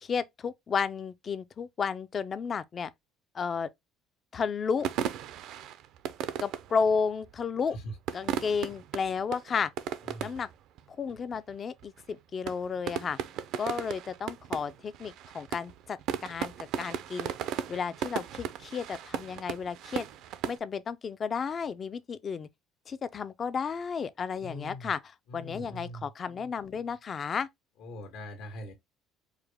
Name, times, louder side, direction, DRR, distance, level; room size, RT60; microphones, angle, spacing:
voice 1, 0.0-2.9 3.3-3.7 4.3-4.9 6.4-7.8 8.1-9.7 10.2-10.5 11.0-13.2 13.6-17.3 17.7-20.1 20.5-22.5 22.9-25.0 25.3-27.5, left 6 dB, 25° left, 0.3 m, -32 dB
sound 1, 4.8-7.3 7.9-10.5 10.8-10.9 11.1-11.5 11.8-12.1 12.5-20.6, right 9 dB, 55° right, 0.4 m, -36 dB
voice 2, 10.0-10.4 24.4-24.9 25.3-26.1 27.8-28.7, equal, 85° left, 1.5 m, -42 dB
4.8 x 2.1 x 3.4 m
cardioid pair, 160°, 0 cm